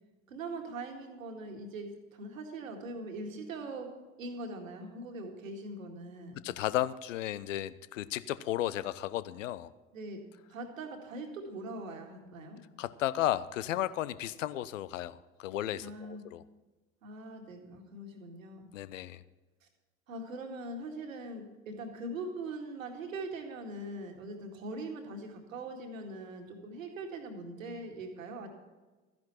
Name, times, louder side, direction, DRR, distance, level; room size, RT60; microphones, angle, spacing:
voice 1, 0.3-3.9 4.2-6.4 9.9-10.2 10.5-12.6 15.8-16.2 17.0-18.7 19.6-19.7 20.1-28.5, right 2 dB, 75° right, 4 dB, 2.0 m, -41 dB
voice 2, 6.4-9.7 12.8-16.4 18.7-19.2, left 13 dB, 70° left, 17 dB, 0.7 m, -34 dB
13.5 x 10.5 x 4.3 m, 1.2 s
figure-of-eight pair, 65°, 41 cm